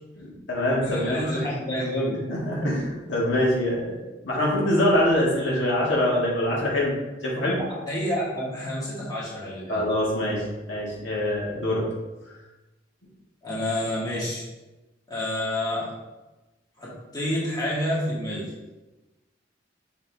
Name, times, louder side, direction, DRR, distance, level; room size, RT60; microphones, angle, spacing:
voice 1, 0.2-1.5 2.3-6.9 7.2-7.6 9.7-11.8, left 1 dB, 75° left, -5 dB, 1.8 m, -24 dB
voice 2, 0.8-2.2 7.4-7.6 7.9-9.8 13.4-14.4 15.1-15.9 16.8-18.5, left 1 dB, 20° left, -8 dB, 2.0 m, -29 dB
6.9 x 4.1 x 3.5 m, 1.1 s
head